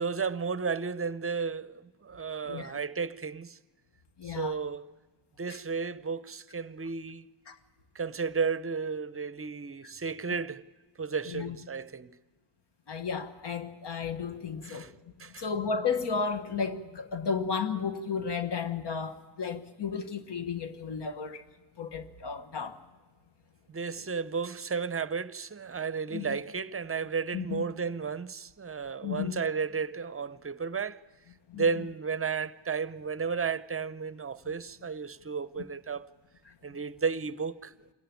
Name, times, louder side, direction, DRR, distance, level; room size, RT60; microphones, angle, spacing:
voice 1, 0.0-3.6 4.2-4.8 5.4-7.3 7.9-10.6 11.0-12.2 14.6-14.9 15.2-15.4 23.7-31.0 31.6-36.1 36.6-37.7, right 5 dB, 30° right, 0.7 m, -33 dB
voice 2, 2.5-2.8 4.2-4.6 7.5-7.6 9.8-9.9 11.3-11.6 12.9-14.9 15.4-21.4 21.8-22.8 26.1-26.4 27.3-27.6 29.0-29.4 31.5-31.6, left 5 dB, 65° left, 1.3 m, -33 dB
25.5 x 14.0 x 9.3 m
wide cardioid pair, 85°, 45 cm